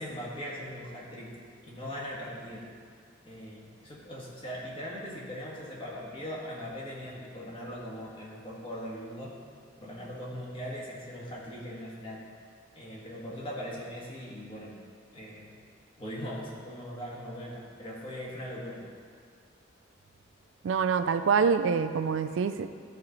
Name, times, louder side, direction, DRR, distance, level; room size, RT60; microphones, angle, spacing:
voice 1, 0.0-1.4 1.6-2.7 3.2-9.3 9.8-12.2 12.7-14.8 15.1-15.5 16.0-18.8, equal, 30° left, -4 dB, 1.5 m, -40 dB
voice 2, 20.6-22.7, right 6 dB, 70° right, 10 dB, 0.3 m, -25 dB
12.5 x 4.2 x 3.9 m, 2.1 s
head